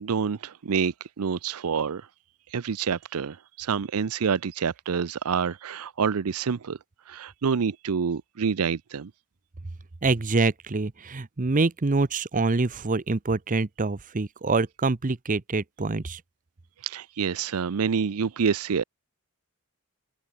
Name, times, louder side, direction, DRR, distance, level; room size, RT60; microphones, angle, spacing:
voice 1, 0.0-2.0 2.5-6.8 7.1-9.1 16.8-18.8, right 6 dB, 75° right, 0.5 m, -27 dB
voice 2, 10.0-16.2, right 3 dB, 35° right, 0.7 m, -25 dB
head